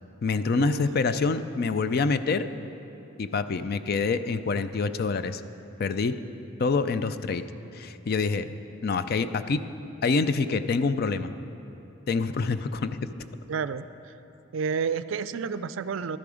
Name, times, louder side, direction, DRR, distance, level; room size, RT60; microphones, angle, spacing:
voice 1, 0.2-2.4 3.2-5.4 5.8-6.1 6.6-7.4 7.7-8.5 8.8-9.6 10.0-11.3 12.1-13.0, left 4 dB, 50° left, 12 dB, 0.4 m, -26 dB
voice 2, 13.5-13.8 14.5-16.2, right 6 dB, 70° right, 14 dB, 0.4 m, -30 dB
12.5 x 10.5 x 4.9 m, 3.0 s
head